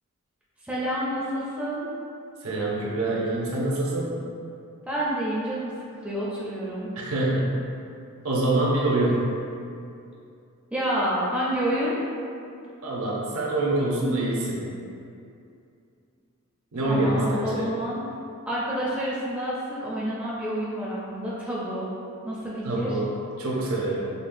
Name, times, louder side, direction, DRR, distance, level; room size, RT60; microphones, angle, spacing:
voice 1, 0.6-1.9 4.9-5.7 6.0-6.9 10.7-12.0 16.8-18.1 18.5-21.9 22.2-23.0, equal, 5° right, -8 dB, 0.4 m, -29 dB
voice 2, 2.4-4.2 7.0-7.5 8.2-9.3 12.8-14.7 16.7-17.7 22.6-23.1 23.4-24.1, right 2 dB, 70° right, -4 dB, 0.7 m, -25 dB
5.2 x 2.2 x 2.6 m, 2.5 s
head